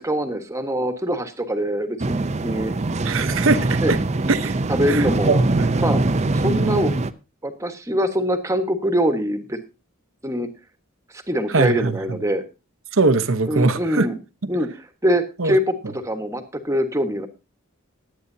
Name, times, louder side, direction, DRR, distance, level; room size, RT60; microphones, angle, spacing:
voice 1, 0.0-2.2 2.4-2.7 3.8-3.9 4.7-5.4 5.8-6.0 6.3-6.9 7.4-9.6 10.2-10.5 11.1-12.4 13.5-14.2 14.5-14.7 15.0-17.3, equal, 15° right, 1.4 m, -23 dB
sound 1, 2.0-7.1, right 2 dB, 35° right, 0.6 m, -23 dB
voice 2, 3.0-4.0 4.3-4.6 4.9-6.0 6.4-6.9 11.5-12.2 12.9-14.1 15.4-15.6, right 3 dB, 70° right, 1.0 m, -21 dB
20.0 x 9.0 x 2.7 m
head